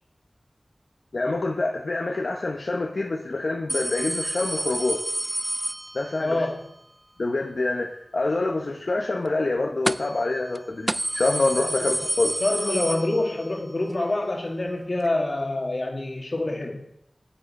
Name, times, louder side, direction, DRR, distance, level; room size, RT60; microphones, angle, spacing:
voice 1, 1.1-5.0 5.9-6.4 7.2-12.3, left 2 dB, 70° left, 1 dB, 0.8 m, -26 dB
sound 1, 3.7-6.4 9.9-10.3 10.5-10.6 10.9-13.6 13.9-14.0 15.1-15.2, right 1 dB, 20° right, 0.3 m, -29 dB
voice 2, 6.2-6.7 11.8-11.9 12.4-16.9, left 2 dB, 50° left, 1 dB, 1.9 m, -26 dB
10.0 x 8.2 x 4.2 m, 0.73 s
wide cardioid pair, 65°, 0 cm